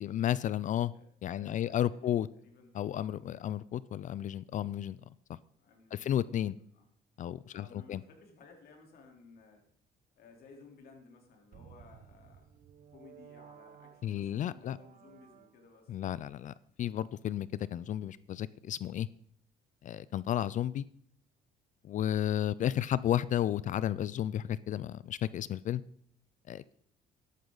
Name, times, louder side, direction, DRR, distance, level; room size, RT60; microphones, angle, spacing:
voice 1, 0.0-0.9 1.2-2.3 2.7-5.0 5.9-6.6 7.2-8.0 14.0-14.8 15.9-19.1 19.8-20.9 21.8-25.8 26.5-26.7, left 11 dB, 50° left, 19 dB, 0.4 m, -33 dB
voice 2, 0.9-2.7 5.6-6.9 7.5-9.6 10.2-12.5 12.9-15.9, left 4 dB, 65° left, 2 dB, 3.6 m, -57 dB
sound 1, 11.5-15.9, right 9 dB, 50° right, 0.9 m, -56 dB
13.5 x 11.5 x 4.0 m, 0.64 s
cardioid pair, 110°, 17 cm